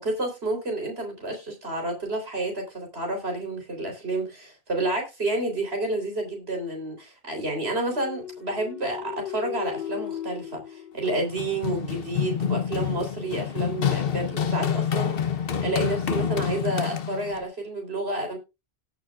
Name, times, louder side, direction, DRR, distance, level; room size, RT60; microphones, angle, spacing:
voice 1, 0.0-15.2 15.6-18.4, right 2 dB, 90° right, 3.9 m, -30 dB
sound 1, 7.8-11.6, left 10 dB, 50° left, 0.9 m, -37 dB
Run, 11.0-17.4, left 8 dB, 65° left, 1.1 m, -27 dB
18.0 x 6.9 x 2.4 m
omnidirectional pair, 1.0 m